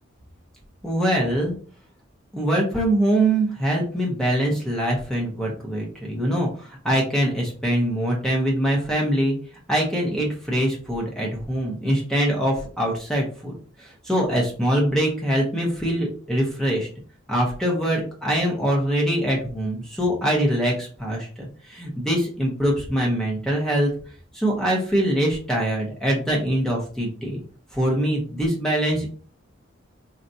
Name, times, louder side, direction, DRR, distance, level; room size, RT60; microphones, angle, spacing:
voice 1, 0.8-1.5 2.3-9.3 9.7-13.5 13.8-16.9 17.3-21.3 21.7-23.9 24.3-27.4 27.7-29.1, right 1 dB, 5° left, -2 dB, 0.7 m, -23 dB
4.2 x 2.4 x 2.6 m, 0.41 s
head